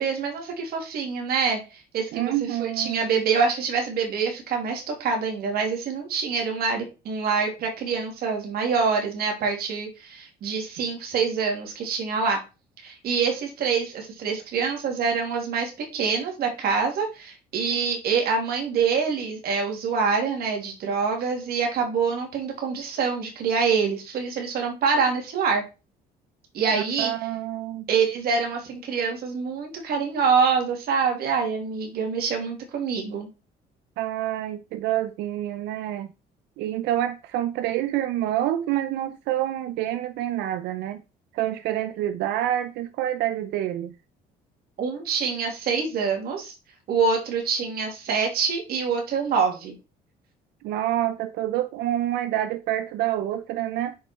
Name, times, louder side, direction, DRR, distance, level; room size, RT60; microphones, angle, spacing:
voice 1, 0.0-12.4 12.8-25.6 26.5-27.1 27.9-33.3 44.8-46.5 46.9-49.8, right 5 dB, 65° right, 2.8 m, -25 dB
voice 2, 2.1-3.2 26.7-27.9 34.0-36.1 36.6-41.0 41.3-44.0 50.6-54.0, right 12 dB, 85° right, 0.6 m, -27 dB
6.9 x 5.3 x 4.5 m
cardioid pair, 110°, 17 cm